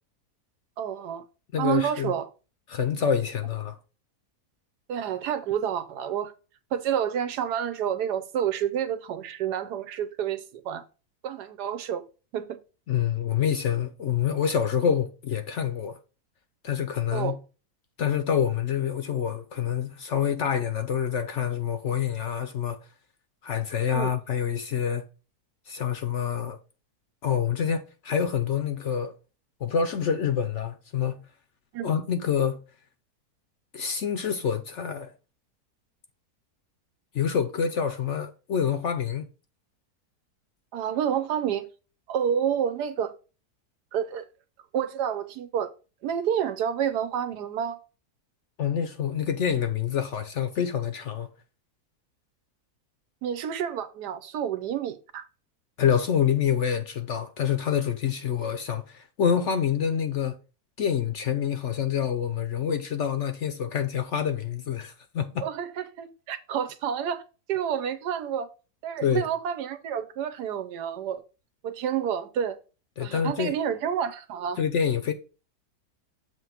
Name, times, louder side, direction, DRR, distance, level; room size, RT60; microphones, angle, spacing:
voice 1, 0.8-1.2 1.6-2.3 4.9-6.3 6.7-10.8 11.2-12.0 12.3-12.6 17.1-17.4 23.9-24.1 31.7-31.9 40.7-41.7 42.1-43.1 43.9-44.3 44.7-45.7 46.0-47.8 53.2-55.2 65.4-67.2 67.5-68.5 68.8-71.2 71.6-72.6 73.0-74.6, right 9 dB, 85° right, 1.3 m, -29 dB
voice 2, 1.5-2.1 2.7-3.8 12.9-16.0 16.6-17.4 18.0-22.8 23.4-25.0 25.7-26.6 27.2-29.1 29.6-31.3 31.8-32.6 33.7-35.1 37.1-39.3 48.6-51.3 55.8-60.4 60.8-65.5 69.0-69.3 73.0-73.5 74.6-75.1, left 8 dB, 60° left, 0.8 m, -27 dB
7.4 x 3.0 x 5.8 m
omnidirectional pair, 1.7 m